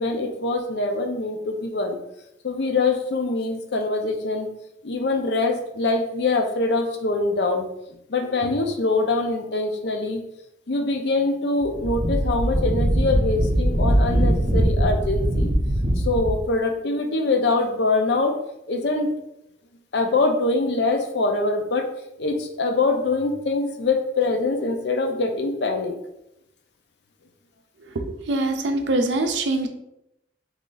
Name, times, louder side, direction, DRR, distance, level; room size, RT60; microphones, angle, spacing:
voice 1, 0.0-2.0 2.4-4.5 4.8-7.7 8.1-10.2 10.7-15.5 16.0-18.4 18.7-19.1 19.9-21.9 22.2-25.9, left 3 dB, 60° left, 4 dB, 0.5 m, -24 dB
Wind, 11.6-16.4, right 1 dB, 45° right, 0.8 m, -21 dB
voice 2, 27.8-29.7, right 2 dB, 70° right, 6 dB, 0.5 m, -24 dB
3.1 x 2.4 x 3.8 m, 0.82 s
head